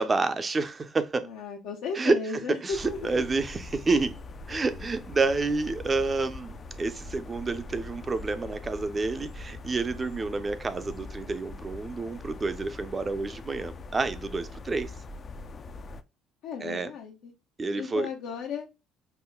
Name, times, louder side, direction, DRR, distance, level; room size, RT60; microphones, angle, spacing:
voice 1, 0.0-1.3 1.9-2.2 2.5-4.2 4.5-14.9 16.6-16.9 17.6-18.1, right 3 dB, 25° right, 0.5 m, -29 dB
voice 2, 1.2-3.3 16.4-17.3 17.8-18.7, left 5 dB, 75° left, 0.7 m, -35 dB
sound 1, 2.7-16.0, left 2 dB, 35° left, 0.4 m, -42 dB
5.5 x 2.1 x 2.2 m
cardioid pair, 100°, 0 cm